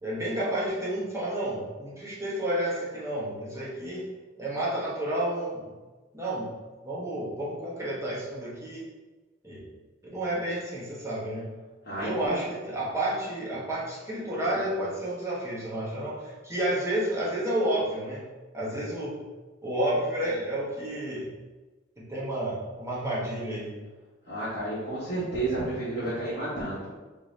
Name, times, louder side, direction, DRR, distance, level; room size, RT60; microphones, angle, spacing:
voice 1, 0.0-4.1 4.4-5.7 6.1-6.5 6.8-8.8 9.4-9.7 10.0-11.5 12.0-18.2 18.5-19.2 19.6-21.3 22.0-23.7, right 1 dB, 15° right, -7 dB, 0.9 m, -30 dB
voice 2, 11.8-12.4 24.3-26.9, right 2 dB, 60° left, -10 dB, 1.1 m, -31 dB
3.7 x 2.6 x 3.1 m, 1.3 s
head